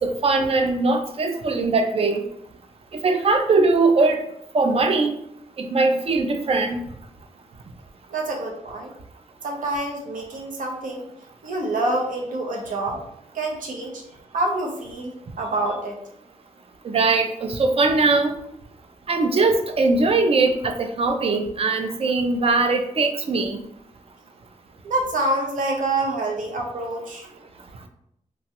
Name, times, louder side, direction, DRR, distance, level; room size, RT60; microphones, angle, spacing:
voice 1, 0.0-2.2 2.9-4.2 4.5-5.2 5.6-6.8 16.8-18.3 19.1-23.6, right 3 dB, 50° right, 6 dB, 0.4 m, -21 dB
voice 2, 8.1-8.9 9.4-11.1 11.4-13.0 13.3-14.0 14.3-16.0 24.8-27.3, right 2 dB, 85° right, 0 dB, 0.7 m, -27 dB
3.0 x 2.3 x 2.8 m, 0.74 s
cardioid pair, 80°, 13 cm